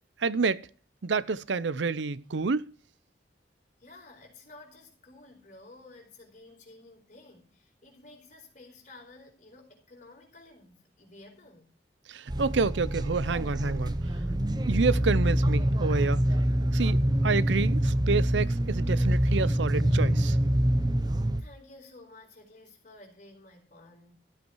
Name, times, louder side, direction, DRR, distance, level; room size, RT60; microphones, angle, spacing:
voice 1, 0.2-0.7 1.0-2.7 12.1-13.9 14.7-16.2 16.7-20.4, right 4 dB, 80° right, 0.6 m, -28 dB
voice 2, 3.8-11.7 21.4-24.2, left 2 dB, 45° left, 4.6 m, -52 dB
sound 1, 12.3-21.4, right 1 dB, 20° right, 0.7 m, -25 dB
13.5 x 8.1 x 4.6 m
head